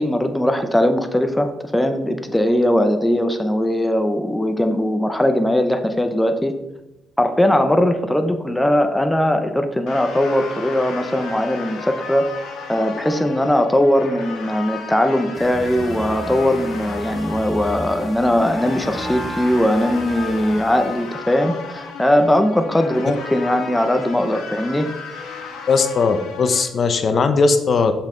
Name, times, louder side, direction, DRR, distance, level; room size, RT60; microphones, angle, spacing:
voice 1, 0.0-6.6 7.2-12.3 12.7-24.9, left 1 dB, 10° left, 7 dB, 0.8 m, -19 dB
sound 1, 9.9-26.6, left 5 dB, 85° left, 1.5 m, -35 dB
sound 2, 15.3-21.1, right 1 dB, 10° right, 1.1 m, -33 dB
voice 2, 25.7-27.9, left 4 dB, 50° left, 9 dB, 0.8 m, -18 dB
7.1 x 5.7 x 3.9 m, 0.96 s
cardioid pair, 90°, 0 cm